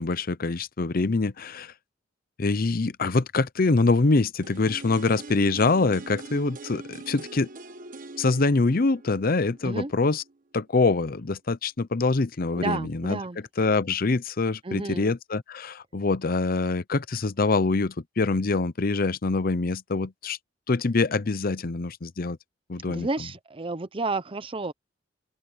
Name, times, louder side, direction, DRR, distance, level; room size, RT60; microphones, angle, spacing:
voice 1, 0.0-1.7 2.4-7.5 8.2-10.2 10.5-13.2 13.6-20.4 20.7-22.4 22.7-23.1, left 3 dB, 50° left, 0.7 m, -24 dB
sound 1, 4.4-10.3 10.6-10.7, right 3 dB, 45° right, 1.3 m, -43 dB
voice 2, 12.6-13.4 14.6-15.1 22.9-24.7, right 3 dB, 30° right, 0.7 m, -31 dB
open air
head